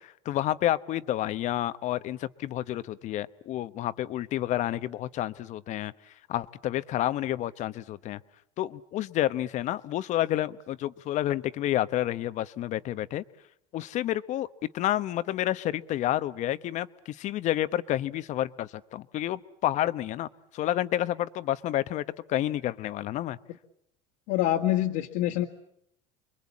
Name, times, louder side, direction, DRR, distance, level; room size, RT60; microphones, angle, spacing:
voice 1, 0.0-5.9 6.3-8.2 8.6-13.2 13.7-14.5 14.7-23.4, left 13 dB, 50° left, 14 dB, 1.0 m, -29 dB
voice 2, 24.3-25.5, left 13 dB, 75° left, 0 dB, 2.1 m, -25 dB
30.0 x 22.5 x 8.5 m, 0.75 s
supercardioid pair, 115°, 16 cm